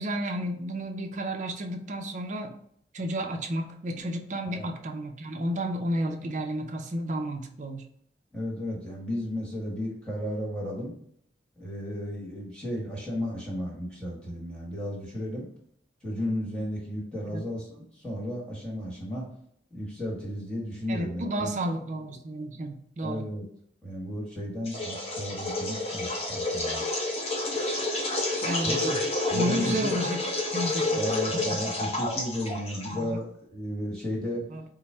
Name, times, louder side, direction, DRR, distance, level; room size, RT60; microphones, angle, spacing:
voice 1, 0.0-2.6 2.9-7.9 17.3-17.4 20.9-23.3 28.4-28.8 29.3-30.3 30.5-31.0 31.3-31.6 32.9-33.1 34.5-34.6, equal, 45° right, 5 dB, 0.5 m, -32 dB
voice 2, 8.3-10.9 11.6-15.5 16.0-19.3 19.7-21.5 23.0-23.4 23.8-26.8 28.6-29.0 29.3-29.9 30.9-34.5, equal, 5° left, -4 dB, 1.2 m, -34 dB
sound 1, 24.7-33.2, left 2 dB, 35° left, 0.7 m, -29 dB
4.6 x 2.0 x 4.3 m, 0.66 s
head